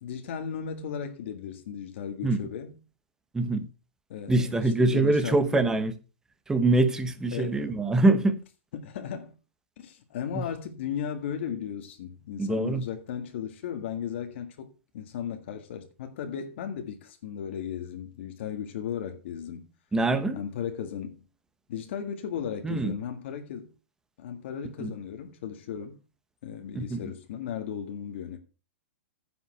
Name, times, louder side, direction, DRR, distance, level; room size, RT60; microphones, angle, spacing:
voice 1, 0.0-2.7 4.1-5.7 7.3-7.7 8.7-9.3 9.8-19.7 20.3-21.2 21.7-23.7 24.2-26.0 26.4-28.4, left 8 dB, 65° left, 1.8 m, -36 dB
voice 2, 3.3-3.7 4.3-5.9 6.5-8.4 10.3-10.4 12.4-12.8 19.9-20.4 22.6-22.9 24.8-24.9 26.7-27.0, right 2 dB, 10° right, 1.1 m, -24 dB
9.9 x 5.7 x 6.4 m
hypercardioid pair, 140°, 7 cm